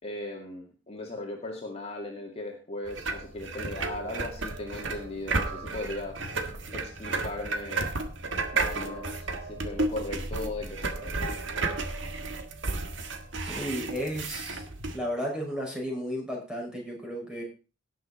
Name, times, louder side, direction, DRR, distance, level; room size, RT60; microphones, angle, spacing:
voice 1, 0.0-6.2 6.7-7.9 8.5-11.3, left 2 dB, 35° left, 0 dB, 2.1 m, -38 dB
sound 1, 2.9-15.0, right 3 dB, 80° right, 1.7 m, -33 dB
voice 2, 13.4-14.6 14.9-17.4, equal, 5° right, -2 dB, 5.9 m, -33 dB
17.5 x 7.0 x 4.3 m, 0.34 s
head